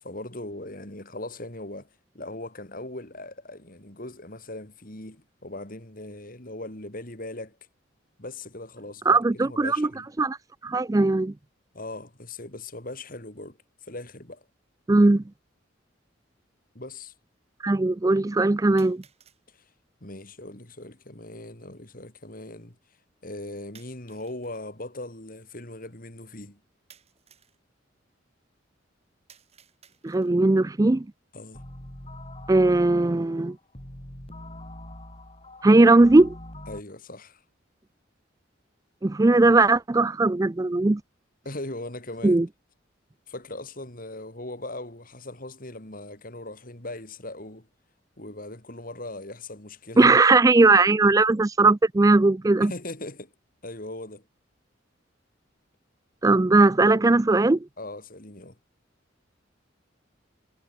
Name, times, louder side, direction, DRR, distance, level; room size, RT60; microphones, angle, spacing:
voice 1, 0.0-1.9 2.1-7.6 8.2-10.1 11.7-13.6 13.8-14.4 16.7-17.1 19.5-19.6 20.0-22.8 23.2-26.6 31.3-31.6 36.7-37.4 41.4-42.4 43.3-47.7 48.2-50.1 52.6-53.3 53.6-54.2 57.8-58.6, left 2 dB, 45° left, 4.1 m, -39 dB
voice 2, 9.1-9.9 10.2-10.4 10.6-11.3 14.9-15.2 17.6-19.0 30.0-31.1 32.5-33.6 35.6-36.3 39.0-41.0 42.2-42.5 50.0-52.7 56.2-57.7, right 2 dB, 20° right, 0.4 m, -19 dB
sound 1, 14.4-14.5 15.5-15.6 18.8-19.4 23.7-24.7 26.9-27.6 29.3-30.5, right 8 dB, 35° right, 5.4 m, -57 dB
sound 2, 31.5-36.8, left 1 dB, 30° left, 3.9 m, -43 dB
head